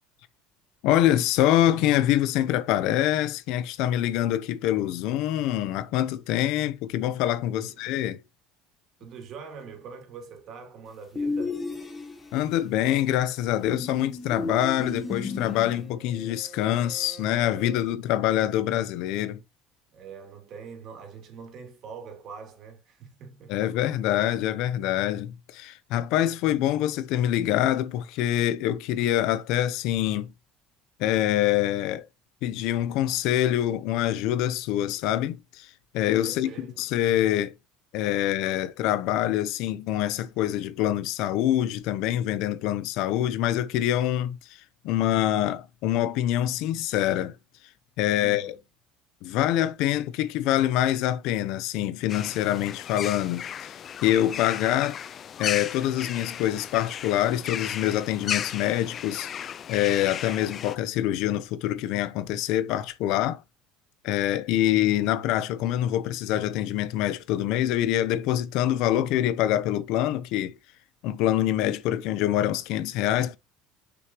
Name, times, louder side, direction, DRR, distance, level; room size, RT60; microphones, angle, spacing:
voice 1, 0.8-8.2 12.3-19.4 23.5-30.3 31.0-32.1 32.4-37.5 37.9-44.4 44.8-47.4 48.0-48.5 49.2-55.0 55.4-59.3 59.7-63.4 64.0-70.6 71.0-73.4, left 12 dB, 65° left, 0.7 m, -25 dB
voice 2, 9.0-11.6 19.9-23.5 36.2-36.8 48.2-48.6 52.6-52.7, right 5 dB, 45° right, 2.9 m, -43 dB
sound 1, 11.1-12.4 13.7-15.9, left 3 dB, 15° left, 1.4 m, -33 dB
Bowed string instrument, 14.7-17.9, right 4 dB, ahead, 2.6 m, -48 dB
sound 2, 52.1-60.8, left 9 dB, 35° left, 0.3 m, -35 dB
6.3 x 6.1 x 3.0 m
cardioid pair, 130°, 0 cm